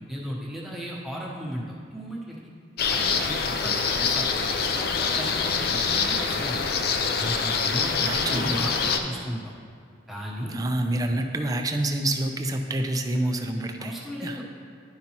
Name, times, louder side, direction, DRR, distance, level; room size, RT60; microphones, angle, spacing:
voice 1, 0.1-2.4 2.9-6.7 7.1-9.5 10.1-10.6 13.8-14.4, equal, ahead, -5 dB, 1.0 m, -35 dB
sound 1, 2.8-9.0, left 5 dB, 55° left, 0.4 m, -25 dB
voice 2, 8.0-8.7 10.5-13.9 14.2-14.4, right 1 dB, 20° right, 5 dB, 0.4 m, -27 dB
10.5 x 5.3 x 2.9 m, 2.2 s
head